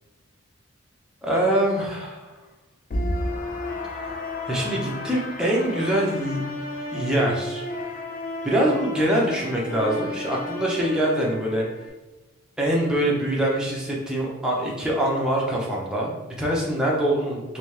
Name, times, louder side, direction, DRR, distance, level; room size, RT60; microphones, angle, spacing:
voice 1, 1.2-2.3 4.5-6.4 6.9-7.6 8.4-11.7 12.6-17.6, right 1 dB, 5° right, -4 dB, 0.6 m, -24 dB
sound 1, 2.9-11.9, left 1 dB, 40° left, 0.4 m, -32 dB
3.3 x 2.7 x 3.1 m, 1.1 s
head